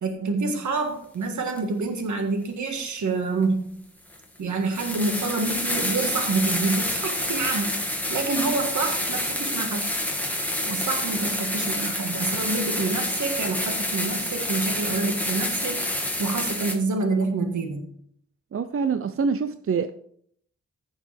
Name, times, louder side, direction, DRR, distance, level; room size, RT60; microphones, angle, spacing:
voice 1, 0.0-3.7 4.4-7.8 8.1-9.9 10.6-15.8 16.2-17.9, right 3 dB, 80° right, 4 dB, 1.7 m, -27 dB
sound 1, 1.6-1.7 3.4-3.5 4.1-4.2 4.7-16.7, left 1 dB, 5° left, 2.0 m, -28 dB
voice 2, 18.5-19.9, right 5 dB, 50° right, 11 dB, 0.6 m, -25 dB
15.5 x 6.6 x 3.4 m, 0.64 s
wide cardioid pair, 100°, 29 cm